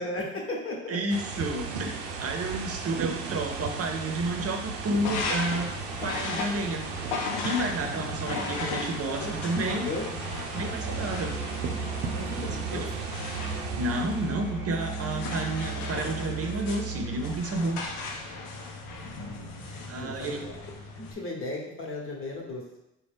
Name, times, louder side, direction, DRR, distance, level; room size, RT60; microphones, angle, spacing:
voice 1, 0.0-1.0 8.2-8.5 9.2-10.1 12.1-12.9 19.1-20.6 20.9-22.6, left 2 dB, 40° left, -1 dB, 1.2 m, -36 dB
voice 2, 0.9-5.7 6.0-6.9 7.4-9.9 10.4-11.4 12.4-12.8 13.7-17.8 19.9-20.4, right 2 dB, 45° right, 4 dB, 0.7 m, -31 dB
sound 1, 1.1-14.5, right 4 dB, 85° right, 0.5 m, -36 dB
sound 2, 4.9-21.1, left 3 dB, 85° left, 0.6 m, -37 dB
Musical instrument, 10.5-17.6, right 5 dB, 10° right, 0.8 m, -36 dB
3.9 x 2.3 x 3.4 m, 0.89 s
hypercardioid pair, 60°, 34 cm